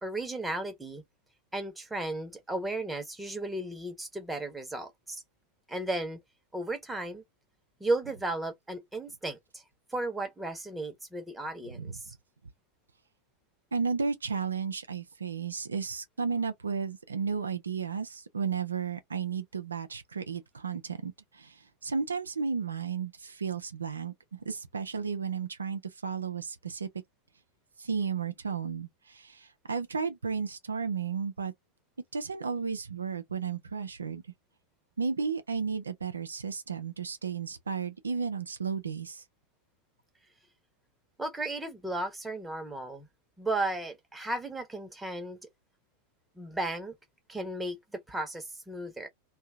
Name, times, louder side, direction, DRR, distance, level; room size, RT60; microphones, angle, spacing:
voice 1, 0.0-1.0 1.5-5.2 5.7-6.2 6.5-7.2 7.8-9.6 9.9-12.1 41.2-43.1 43.4-45.4 46.4-46.9 47.3-49.1, right 2 dB, 5° right, 1.0 m, -34 dB
voice 2, 11.7-12.2 13.7-26.9 27.8-31.5 32.1-34.2 35.0-39.2, right 5 dB, 75° right, 0.5 m, -33 dB
2.7 x 2.3 x 3.4 m
figure-of-eight pair, 90°, 0 cm